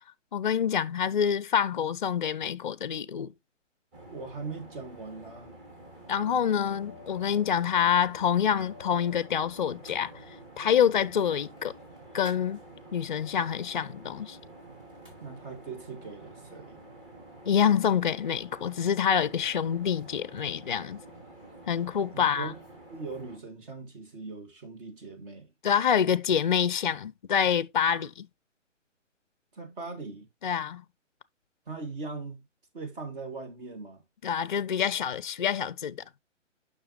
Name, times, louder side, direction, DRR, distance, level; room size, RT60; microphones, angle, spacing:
voice 1, 0.3-3.3 6.1-10.1 10.6-11.7 12.1-12.6 12.9-14.4 17.5-21.0 21.7-22.5 25.6-28.3 30.4-30.8 34.2-36.0, left 8 dB, 40° left, 0.4 m, -26 dB
sound 1, 3.9-23.4, right 1 dB, 25° right, 2.6 m, -49 dB
voice 2, 4.1-5.5 15.2-16.8 22.1-22.6 22.9-25.5 29.5-30.3 31.7-32.4 32.7-34.0, right 3 dB, 45° right, 2.4 m, -40 dB
7.6 x 5.8 x 3.0 m
figure-of-eight pair, 140°, 37 cm